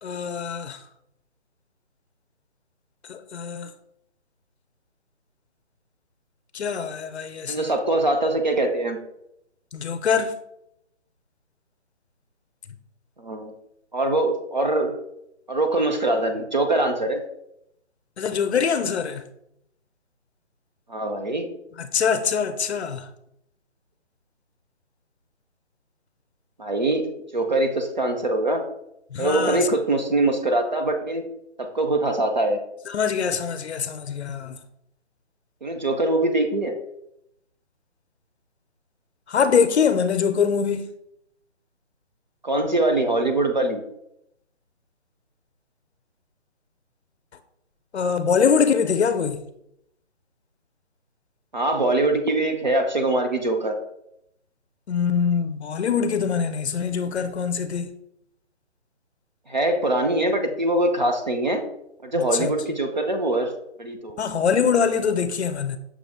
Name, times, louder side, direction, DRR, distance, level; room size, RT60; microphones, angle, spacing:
voice 1, 0.0-0.8 3.1-3.7 6.5-7.7 9.7-10.3 18.2-19.2 21.8-23.1 29.1-29.7 32.9-34.6 39.3-40.9 47.9-49.4 54.9-57.9 62.1-62.5 64.2-65.8, left 6 dB, 65° left, 0.5 m, -23 dB
voice 2, 7.5-9.0 13.2-13.5 13.9-14.9 15.5-17.2 20.9-21.5 26.6-27.1 27.3-28.6 29.2-31.2 31.6-32.6 35.6-36.7 42.4-43.8 51.5-53.8 59.5-61.6 62.0-63.5 63.8-64.2, right 2 dB, 40° right, 0.5 m, -23 dB
5.9 x 2.3 x 3.4 m
hypercardioid pair, 165°, 36 cm